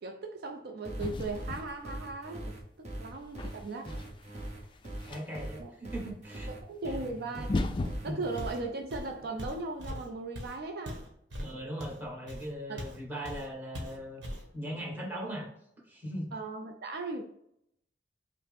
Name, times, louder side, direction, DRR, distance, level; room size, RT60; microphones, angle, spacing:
voice 1, 0.0-4.0 5.6-5.7 6.6-7.5 8.0-11.0 12.7-12.9 16.3-17.2, right 3 dB, 60° right, 0.4 m, -38 dB
sound 1, 0.8-8.6, right 1 dB, 40° right, 0.9 m, -41 dB
sound 2, 1.0-2.2 3.0-5.5 6.9-7.0 7.4-9.5, left 2 dB, 30° left, 0.3 m, -37 dB
voice 2, 5.0-6.5 6.8-7.1 7.5-7.6 8.0-8.2 11.4-14.2 14.5-15.5 15.8-16.3, equal, 10° right, 1.2 m, -39 dB
Walk footsteps, 8.4-8.6 8.9-13.0 13.2-13.5 13.7-14.5, equal, 75° right, 1.0 m, -41 dB
5.5 x 2.0 x 3.3 m
head